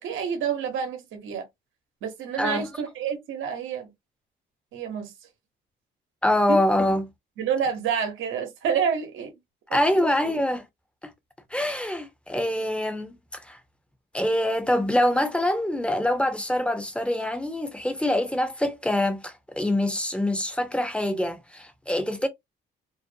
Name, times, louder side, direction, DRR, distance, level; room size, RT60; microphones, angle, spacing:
voice 1, 0.0-1.5 2.0-3.9 4.7-5.1 6.5-6.6 7.4-9.3 9.7-10.3, right 7 dB, 80° right, 1.0 m, -28 dB
voice 2, 6.2-7.1 9.7-10.6 11.5-13.6 14.1-22.3, left 1 dB, 5° left, 0.6 m, -25 dB
2.6 x 2.1 x 2.6 m
cardioid pair, 90°, 20 cm